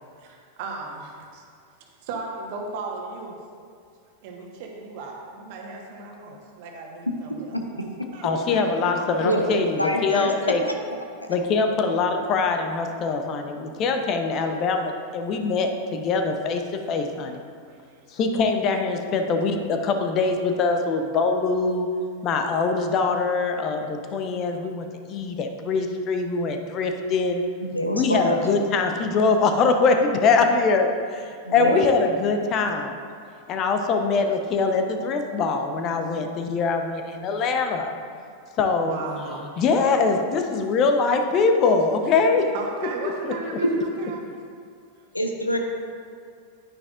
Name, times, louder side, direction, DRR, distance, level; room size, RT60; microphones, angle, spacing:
voice 1, 0.2-1.4 2.0-3.4 4.2-7.6 8.1-9.6 13.7-13.8 17.6-18.1 27.1-27.3 31.2-31.4 38.8-39.6 42.5-44.2, right 3 dB, 50° right, 0 dB, 1.4 m, -36 dB
voice 2, 8.2-10.6 11.3-17.4 18.1-21.9 22.2-27.4 27.9-31.3 31.5-33.0 33.5-37.9 38.6-39.0 39.6-42.4 43.0-43.3, left 4 dB, 35° left, 5 dB, 0.8 m, -23 dB
voice 3, 9.8-10.5 11.2-11.3 27.6-28.5 31.4-31.8 37.2-37.3 43.6-43.7 45.1-45.7, equal, 85° left, 2 dB, 0.9 m, -25 dB
9.6 x 9.6 x 2.5 m, 2.3 s
figure-of-eight pair, 90°, 0 cm